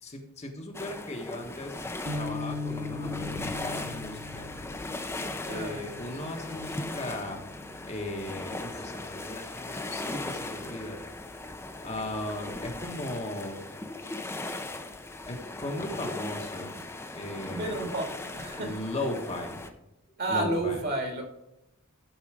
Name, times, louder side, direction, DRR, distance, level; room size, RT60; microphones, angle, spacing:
voice 1, 0.0-1.8 2.1-4.5 5.4-7.4 7.9-11.0 11.8-13.6 15.3-16.8 17.1-17.9 18.6-19.6 20.3-20.8, left 1 dB, 30° left, 1.4 m, -37 dB
sound 1, 0.7-19.7, left 2 dB, 10° left, 0.7 m, -38 dB
sound 2, 2.0-8.5, left 3 dB, 65° right, 1.8 m, -40 dB
voice 2, 5.4-5.9 17.5-18.8 20.2-21.2, right 2 dB, 50° right, 2.1 m, -31 dB
12.0 x 5.5 x 5.0 m
head